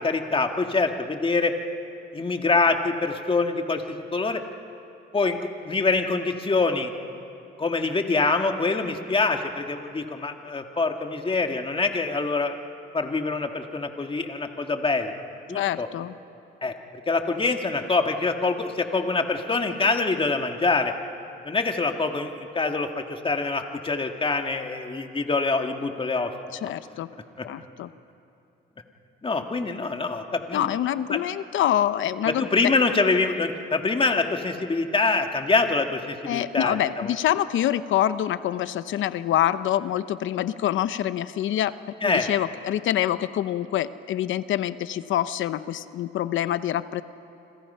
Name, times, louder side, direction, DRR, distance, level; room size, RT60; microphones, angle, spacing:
voice 1, 0.0-1.5 2.1-3.8 4.1-4.4 5.1-5.4 5.6-6.9 7.6-12.6 12.9-15.1 15.5-15.9 16.6-16.7 17.1-20.9 21.4-26.3 27.4-27.5 29.2-30.7 31.1-31.2 32.3-37.1 42.0-42.3, left 3 dB, 25° left, 4 dB, 2.0 m, -25 dB
voice 2, 15.5-16.1 26.5-27.1 27.4-27.9 30.5-32.5 36.3-47.0, left 11 dB, 75° left, 13 dB, 0.9 m, -26 dB
29.5 x 26.0 x 5.7 m, 2.7 s
cardioid pair, 90°, 20 cm